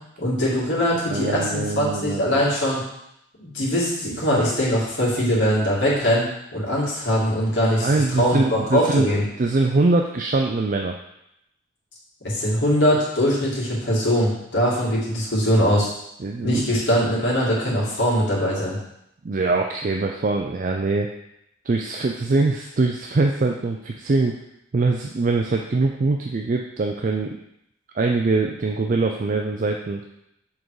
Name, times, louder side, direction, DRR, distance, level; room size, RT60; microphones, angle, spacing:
voice 1, 0.2-2.8 3.4-9.2 12.2-15.9 16.4-18.8, equal, 65° left, -6 dB, 2.3 m, -21 dB
voice 2, 1.1-2.4 7.8-10.9 16.2-16.8 19.2-21.1 21.7-24.4 24.7-27.4 28.0-30.0, right 3 dB, 40° right, 2 dB, 0.4 m, -23 dB
7.2 x 3.8 x 4.8 m, 0.80 s
head